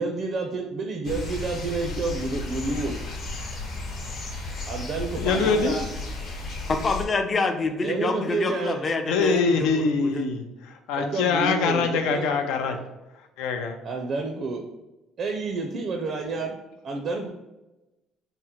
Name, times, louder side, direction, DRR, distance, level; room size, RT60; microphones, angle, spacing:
voice 1, 0.0-3.0 4.7-5.8 7.8-8.9 11.0-12.3 13.8-14.6 15.2-16.6 16.8-17.3, right 3 dB, 50° right, 3 dB, 0.5 m, -29 dB
sound 1, 1.0-7.1, left 2 dB, 60° left, 1.0 m, -34 dB
voice 2, 5.2-5.8 9.1-12.8 13.1-13.8, left 5 dB, 85° left, 6 dB, 0.5 m, -24 dB
voice 3, 6.7-9.9 10.1-10.2, left 3 dB, 30° left, 6 dB, 0.4 m, -26 dB
3.6 x 2.1 x 4.3 m, 1.0 s
cardioid pair, 115°, 0 cm